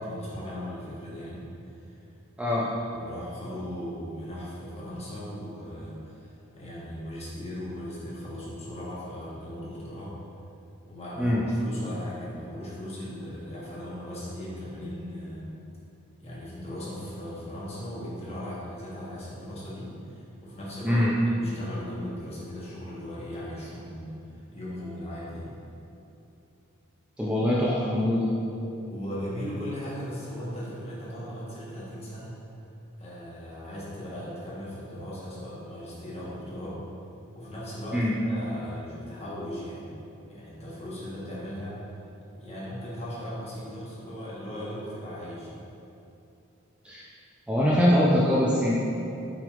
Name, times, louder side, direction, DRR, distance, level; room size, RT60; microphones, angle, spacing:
voice 1, 0.0-1.4 1.8-1.9 2.9-10.1 10.8-15.5 16.2-25.5 28.9-32.4 33.0-36.8 37.3-39.9 40.3-41.8 42.4-45.6, equal, 30° left, -7 dB, 1.0 m, -38 dB
voice 2, 2.4-2.7 11.2-11.4 20.8-21.1 27.2-28.3 37.9-38.1 46.8-47.0 47.5-48.7, left 1 dB, 5° right, -6 dB, 0.3 m, -23 dB
5.7 x 3.5 x 2.3 m, 2.8 s
head